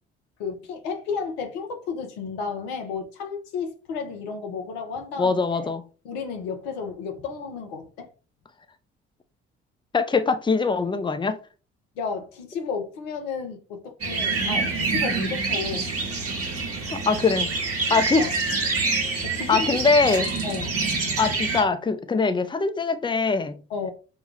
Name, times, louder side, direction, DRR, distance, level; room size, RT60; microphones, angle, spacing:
voice 1, 0.4-5.7 6.0-8.1 12.0-15.9 17.9-18.3 19.2-19.8 20.4-20.8 23.7-23.9, left 5 dB, 80° left, 0.9 m, -32 dB
voice 2, 5.2-5.8 9.9-11.4 16.9-17.5 17.9-18.3 19.5-20.3 21.2-23.5, left 4 dB, 15° left, 0.7 m, -22 dB
sound 1, 14.0-21.6, right 3 dB, 50° right, 1.4 m, -26 dB
5.6 x 2.3 x 3.3 m
hypercardioid pair, 50°, 31 cm